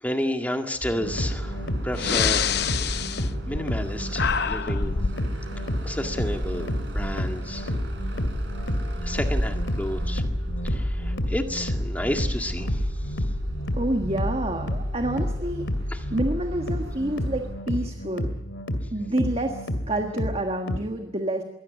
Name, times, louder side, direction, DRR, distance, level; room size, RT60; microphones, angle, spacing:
voice 1, 0.0-1.6 1.8-2.7 3.2-5.0 5.8-7.7 9.0-10.2 10.6-12.8 15.9-16.0, equal, 10° left, 4 dB, 1.9 m, -31 dB
sound 1, 0.8-20.8, equal, 75° left, 2.4 m, -31 dB
sound 2, 1.0-17.5, equal, 65° right, 4.5 m, -34 dB
Breathing, 1.3-1.4 1.9-5.2, left 7 dB, 55° left, 0.7 m, -26 dB
voice 2, 13.8-15.6 16.1-18.3 18.9-21.4, right 1 dB, 30° right, 4 dB, 1.5 m, -28 dB
23.0 x 17.0 x 8.3 m, 0.92 s
head